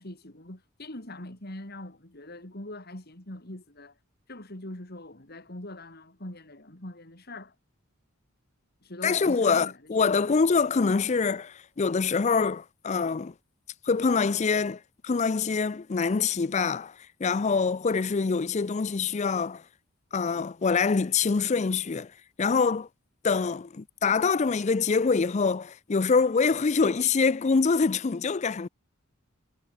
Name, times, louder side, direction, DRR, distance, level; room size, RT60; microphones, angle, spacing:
voice 1, 0.0-4.0 4.3-7.5 8.8-10.3, left 1 dB, 50° left, 3.5 m, -42 dB
voice 2, 9.0-13.3 13.9-16.9 17.2-19.6 20.1-22.1 22.4-22.9 23.2-28.7, left 5 dB, 35° left, 0.4 m, -25 dB
head